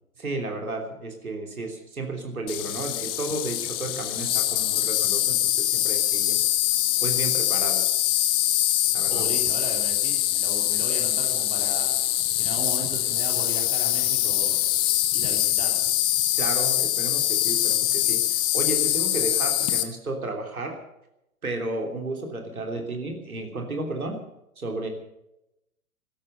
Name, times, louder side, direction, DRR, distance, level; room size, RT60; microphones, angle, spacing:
voice 1, 0.2-6.4 7.0-8.0 8.9-9.3 16.3-20.8 21.4-24.2 24.6-24.9, right 2 dB, 75° right, 3 dB, 3.2 m, -33 dB
Insect, 2.5-19.8, left 14 dB, 10° left, 0.5 m, -24 dB
voice 2, 9.1-12.0 12.3-14.6 15.1-15.9, right 3 dB, 15° right, 1 dB, 3.2 m, -37 dB
16.0 x 13.0 x 6.7 m, 0.87 s
figure-of-eight pair, 115°, 44 cm